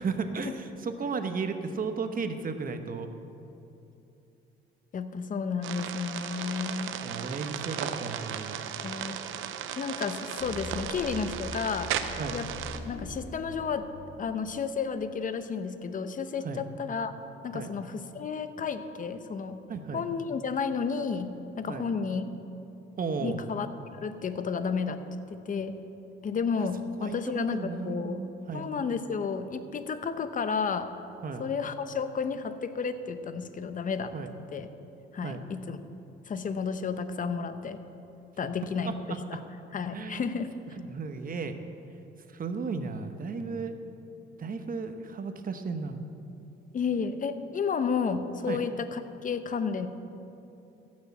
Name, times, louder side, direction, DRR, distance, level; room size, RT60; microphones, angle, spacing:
voice 1, 0.0-3.1 7.0-8.6 12.2-12.4 16.4-16.6 17.5-17.7 19.7-20.0 21.7-21.9 23.0-23.4 27.0-28.7 31.2-31.5 34.1-34.3 35.2-35.4 38.8-38.9 39.9-40.3 40.8-41.6 42.3-43.7 44.4-46.0 48.5-48.6, right 4 dB, 45° right, 8 dB, 1.0 m, -34 dB
voice 2, 4.9-7.0 8.8-9.2 9.8-12.0 12.3-12.5 12.8-13.9 14.2-17.1 17.4-19.6 19.9-22.3 23.2-23.7 23.9-25.0 25.3-25.8 26.2-28.2 28.5-30.9 31.4-34.2 34.5-34.7 35.1-35.8 36.3-37.8 38.4-39.4 39.7-40.6 46.7-49.9, left 5 dB, 40° left, 10 dB, 0.8 m, -32 dB
sound 1, 5.6-12.8, right 9 dB, 85° right, 0.7 m, -36 dB
sound 2, 10.4-14.5, left 1 dB, 85° left, 2.3 m, -42 dB
15.0 x 6.4 x 7.1 m, 2.8 s
cardioid pair, 90°, 20 cm